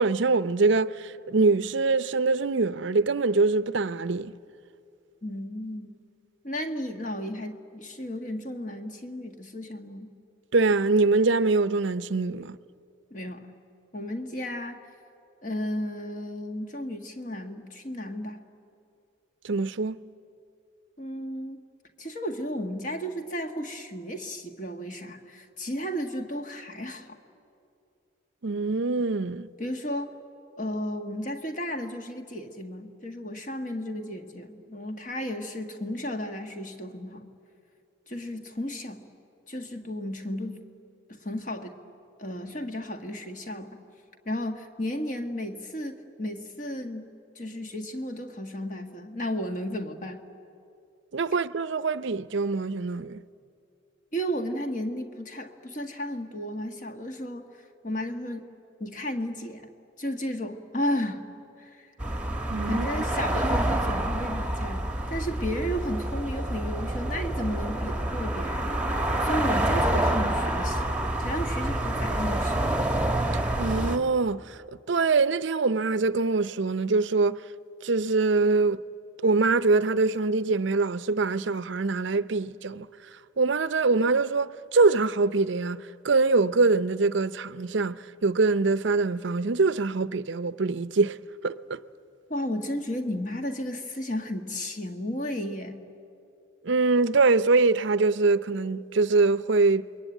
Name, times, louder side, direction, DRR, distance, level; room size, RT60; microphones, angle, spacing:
voice 1, 0.0-4.3 10.5-12.6 19.4-20.0 28.4-29.5 51.1-53.2 62.5-62.9 73.6-74.6 74.9-77.4 77.8-78.8 79.2-82.9 83.4-91.2 91.4-91.8 96.6-99.9, right 3 dB, 65° right, 0.6 m, -24 dB
voice 2, 5.2-5.9 6.4-10.1 13.1-13.5 13.9-14.9 15.4-18.4 21.0-21.7 22.0-27.2 29.6-30.1 30.6-37.3 38.1-39.0 39.5-40.6 41.1-41.7 42.2-43.8 44.2-47.1 47.3-50.2 54.1-57.6 57.8-58.5 58.8-59.7 60.0-61.2 61.6-61.9 62.7-68.7 69.2-70.8 71.2-72.6 92.3-95.8, equal, 40° left, 1.7 m, -33 dB
sound 1, 62.0-74.0, right 1 dB, 5° right, 1.3 m, -27 dB
28.5 x 22.0 x 9.2 m
head